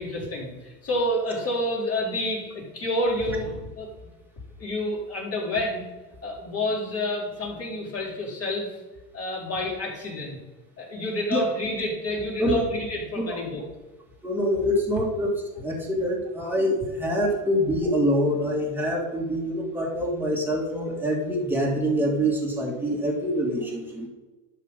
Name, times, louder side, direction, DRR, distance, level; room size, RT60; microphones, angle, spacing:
voice 1, 0.0-3.9 4.6-5.8 6.2-8.7 9.1-10.4 10.8-13.6, left 1 dB, 30° left, -3 dB, 4.4 m, -29 dB
voice 2, 14.2-24.1, equal, 5° right, -2 dB, 2.6 m, -25 dB
11.5 x 7.8 x 5.4 m, 1.2 s
supercardioid pair, 130°, 49 cm